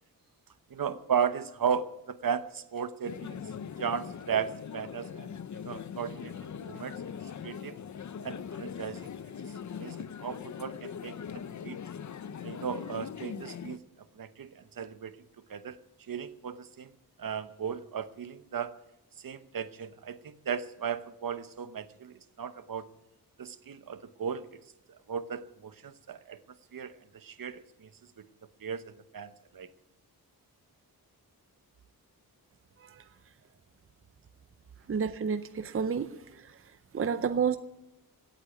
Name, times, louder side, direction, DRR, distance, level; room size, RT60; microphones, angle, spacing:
voice 1, 0.7-3.4 3.8-5.3 5.6-6.3 6.6-7.0 7.4-7.7 8.2-9.1 9.4-11.8 12.4-13.8 14.2-16.9 17.2-18.7 19.2-22.9 23.4-24.6 24.9-26.4 26.7-28.2 28.6-29.7, right 7 dB, 60° right, 12 dB, 1.0 m, -36 dB
sound 1, 3.0-13.8, left 7 dB, 50° left, 0.6 m, -41 dB
voice 2, 34.9-36.5 36.9-37.6, right 6 dB, 35° right, 11 dB, 0.6 m, -30 dB
17.5 x 8.3 x 8.0 m, 0.93 s
wide cardioid pair, 175°, 37 cm